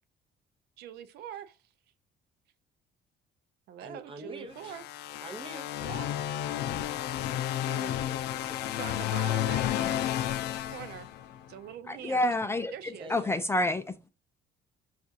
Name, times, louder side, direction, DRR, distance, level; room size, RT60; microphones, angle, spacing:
voice 1, 0.8-1.6 3.7-4.8 5.8-6.1 7.6-8.1 8.6-10.1 10.7-11.1 11.5-12.3 12.7-13.1, right 10 dB, 70° right, 0.4 m, -43 dB
voice 2, 3.8-4.8 5.2-5.9 7.8-8.8 9.3-9.4 12.9-13.3, right 1 dB, 30° right, 0.8 m, -46 dB
sound 1, 4.6-11.5, left 12 dB, 80° left, 0.4 m, -32 dB
voice 3, 11.9-12.7 13.1-14.1, left 1 dB, 15° left, 0.4 m, -28 dB
5.9 x 2.4 x 2.7 m
cardioid pair, 110°, 17 cm